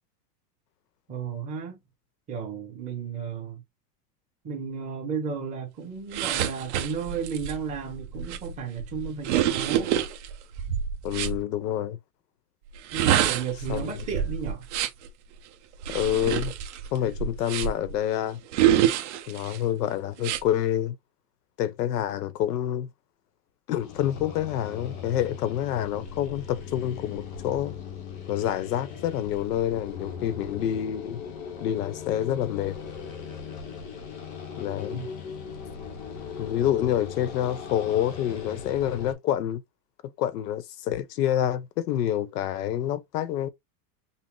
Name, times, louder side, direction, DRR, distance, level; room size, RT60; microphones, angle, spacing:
voice 1, 1.1-1.8 2.3-3.6 4.4-9.9 12.9-14.6 34.9-35.1, right 6 dB, 15° right, 1.1 m, -33 dB
sound 1, 6.1-11.4 12.7-15.1 15.8-17.9 18.5-19.6 20.2-20.4, right 10 dB, 45° right, 0.7 m, -27 dB
voice 2, 11.0-12.0 13.7-14.0 15.9-16.5 16.9-18.4 19.3-21.0 21.6-22.9 23.7-27.8 28.3-31.2 31.6-32.8 34.6-35.0 36.4-39.6 40.0-43.5, left 11 dB, 75° left, 0.9 m, -27 dB
sound 2, 23.8-39.1, left 6 dB, 25° left, 0.6 m, -39 dB
5.7 x 2.0 x 2.9 m
supercardioid pair, 175°, 48 cm